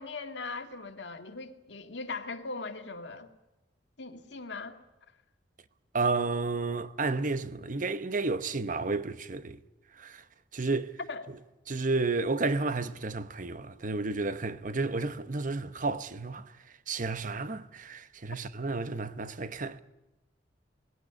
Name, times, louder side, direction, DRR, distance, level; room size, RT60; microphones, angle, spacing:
voice 1, 0.0-3.3 4.0-4.8 11.1-11.2, left 3 dB, 75° left, 2.0 m, -39 dB
voice 2, 5.9-9.6 10.0-10.2 10.5-11.0 11.7-16.5 16.9-19.8, right 3 dB, 45° right, 1.0 m, -31 dB
20.0 x 17.0 x 10.0 m
head